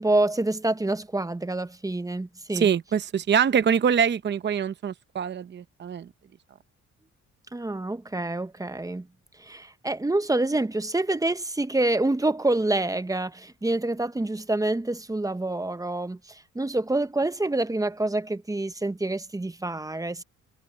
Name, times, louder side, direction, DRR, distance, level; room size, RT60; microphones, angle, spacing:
voice 1, 0.0-2.7 7.5-9.1 9.4-20.2, right 2 dB, 10° right, 0.9 m, -27 dB
voice 2, 2.5-6.1, right 7 dB, 35° right, 0.8 m, -24 dB
cardioid pair, 90°, 30 cm